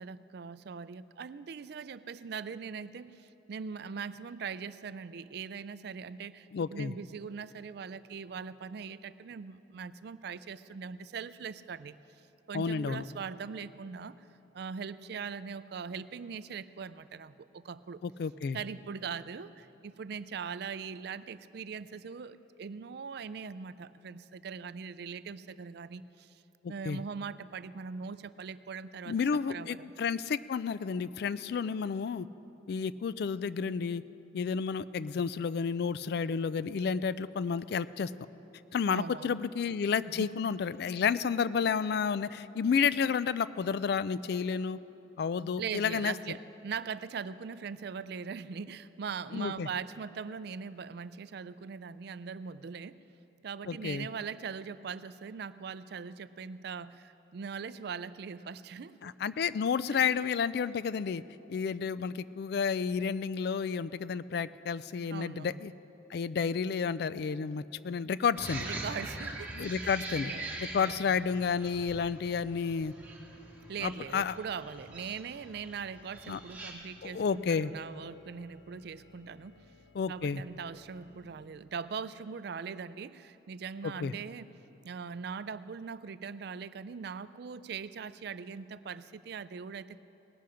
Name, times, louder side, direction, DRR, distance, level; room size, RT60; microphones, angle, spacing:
voice 1, 0.0-12.0 12.5-14.3 14.5-18.0 18.5-26.4 26.7-29.9 38.9-39.4 40.1-40.3 45.6-53.0 53.4-59.1 59.9-60.0 65.1-65.6 68.6-71.2 73.7-79.7 80.1-84.5 84.8-90.0, right 6 dB, 60° right, 15 dB, 0.4 m, -41 dB
voice 2, 6.5-6.9 12.5-13.0 18.0-18.6 26.6-27.0 29.1-32.3 32.7-34.0 34.3-38.1 38.7-44.8 45.2-46.1 49.3-49.7 53.7-54.1 59.0-61.2 61.5-65.7 66.1-68.6 69.6-70.3 70.7-72.9 73.8-74.3 76.3-76.4 77.0-77.7 79.9-80.4 84.0-84.1, left 6 dB, 60° left, 16 dB, 0.3 m, -31 dB
sound 1, 68.4-76.7, right 2 dB, 10° right, 1.7 m, -43 dB
sound 2, 68.5-81.5, left 2 dB, 85° left, 0.9 m, -60 dB
18.5 x 11.5 x 5.0 m, 3.0 s
head